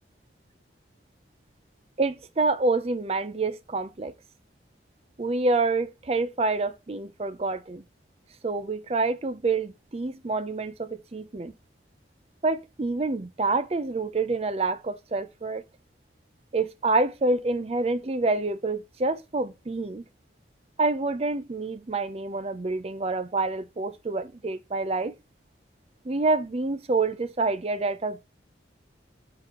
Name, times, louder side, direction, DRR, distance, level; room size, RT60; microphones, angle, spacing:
voice 1, 2.0-4.1 5.2-7.8 8.4-11.5 12.4-15.6 16.5-20.0 20.8-25.1 26.0-28.2, right 3 dB, 35° right, 0.5 m, -27 dB
9.8 x 3.9 x 2.9 m
head